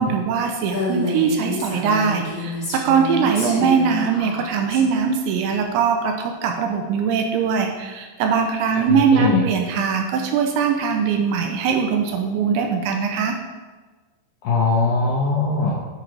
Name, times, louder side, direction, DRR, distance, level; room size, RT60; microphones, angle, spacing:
voice 1, 0.0-13.4, right 6 dB, 85° right, 3 dB, 2.9 m, -21 dB
Female speech woman speaking, 0.6-4.8, left 1 dB, 55° left, 0.4 m, -28 dB
voice 2, 8.9-9.4 14.4-15.8, left 4 dB, 75° left, -6 dB, 2.1 m, -21 dB
8.8 x 4.5 x 4.8 m, 1.3 s
omnidirectional pair, 5.5 m